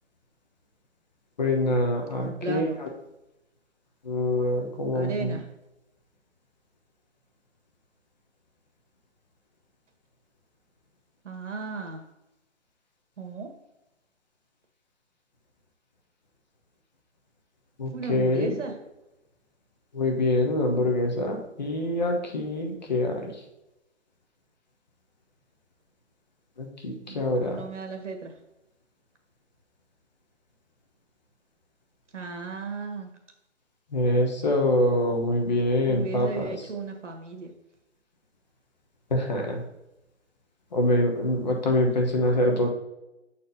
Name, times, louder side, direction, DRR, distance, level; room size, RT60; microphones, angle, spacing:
voice 1, 1.4-2.7 4.0-5.3 17.8-18.5 19.9-23.2 26.6-27.6 33.9-36.5 39.1-39.6 40.7-42.7, left 1 dB, 35° left, 1 dB, 1.1 m, -25 dB
voice 2, 2.2-2.8 4.9-5.5 11.2-12.0 13.2-13.5 17.9-18.8 27.1-28.3 32.1-33.1 35.8-37.5, right 4 dB, 70° right, 4 dB, 1.6 m, -35 dB
7.1 x 4.3 x 4.0 m, 0.93 s
hypercardioid pair, 175°, 37 cm